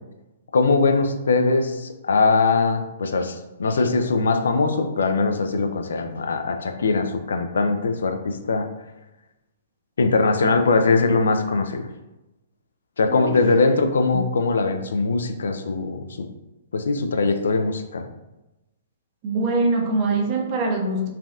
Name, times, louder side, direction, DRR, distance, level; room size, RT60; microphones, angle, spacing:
voice 1, 0.5-8.7 10.0-11.9 13.0-16.3 16.7-18.1, left 3 dB, 75° left, 6 dB, 0.3 m, -21 dB
voice 2, 19.2-21.1, right 2 dB, 40° right, 1 dB, 0.5 m, -23 dB
3.3 x 2.2 x 2.5 m, 0.98 s
hypercardioid pair, 130°, 0 cm